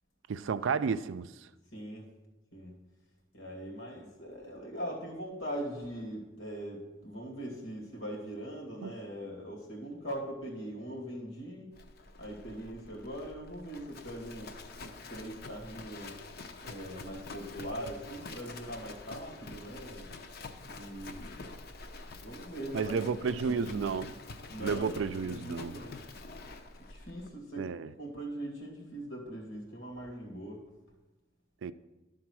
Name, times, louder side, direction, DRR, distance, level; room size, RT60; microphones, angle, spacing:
voice 1, 0.3-1.3 8.8-8.9 22.7-24.1 24.6-25.7 27.6-27.9 31.6-31.7, right 5 dB, 75° right, 0.4 m, -32 dB
voice 2, 1.7-2.1 2.5-2.7 3.3-11.7 12.2-16.2 16.6-20.1 20.6-21.5 22.2-23.9 24.5-26.0 26.9-27.7 28.0-30.7, equal, 85° left, 2.3 m, -41 dB
Livestock farm animals working animals, 11.7-27.3, left 3 dB, 50° left, 0.7 m, -47 dB
11.5 x 3.9 x 6.1 m
head